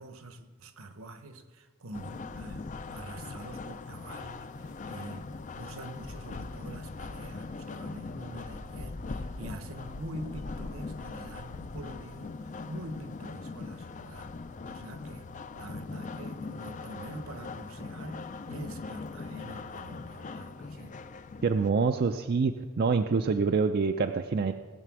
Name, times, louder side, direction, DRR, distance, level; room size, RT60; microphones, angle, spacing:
voice 1, 0.0-5.3 5.6-12.3 12.7-14.3 14.6-15.3 15.6-21.0, right 1 dB, 65° right, 9 dB, 0.9 m, -45 dB
sound 1, 1.9-21.7, left 3 dB, 35° left, 0.4 m, -41 dB
voice 2, 21.4-24.5, right 4 dB, 45° right, 6 dB, 0.4 m, -26 dB
18.0 x 6.7 x 6.1 m, 1.5 s
head